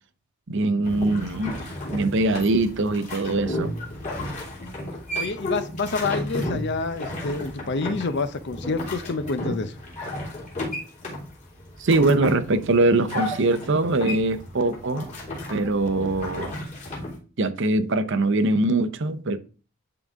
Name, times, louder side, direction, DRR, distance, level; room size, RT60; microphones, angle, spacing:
voice 1, 0.5-1.6 1.9-3.8 11.8-15.1 15.5-16.5 17.4-19.4, right 2 dB, 55° right, 0.7 m, -22 dB
sound 1, 0.8-17.2, left 1 dB, 35° left, 3.0 m, -33 dB
voice 2, 5.1-9.7, left 3 dB, 50° left, 0.6 m, -28 dB
10.5 x 4.0 x 3.6 m
head